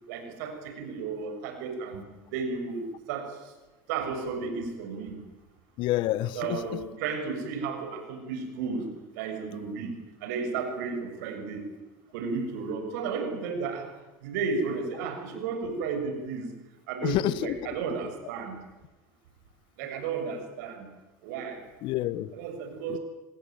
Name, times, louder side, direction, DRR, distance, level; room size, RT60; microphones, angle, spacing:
voice 1, 0.0-3.5 3.9-5.2 6.3-8.9 9.1-9.9 10.2-11.6 12.1-13.9 14.2-16.5 16.9-18.6 19.8-20.9 21.2-21.6 22.3-23.0, right 5 dB, 80° right, 6 dB, 6.8 m, -33 dB
voice 2, 5.8-6.8 17.0-17.6 21.8-22.3 22.9-23.0, left 15 dB, 60° left, 18 dB, 1.3 m, -28 dB
27.0 x 19.5 x 9.3 m, 1.1 s
supercardioid pair, 95°, 9 cm